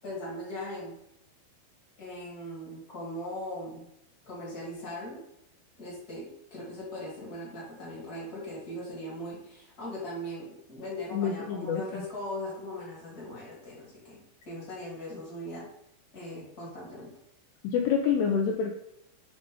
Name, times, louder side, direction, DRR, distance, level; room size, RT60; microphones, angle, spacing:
voice 1, 0.0-0.9 2.0-3.9 4.2-5.2 5.8-14.2 14.4-15.6 16.1-17.1, left 1 dB, 40° left, -6 dB, 1.3 m, -39 dB
voice 2, 11.1-12.0 17.6-18.8, left 7 dB, 90° left, 2 dB, 2.4 m, -27 dB
8.2 x 2.7 x 5.2 m, 0.79 s
omnidirectional pair, 5.5 m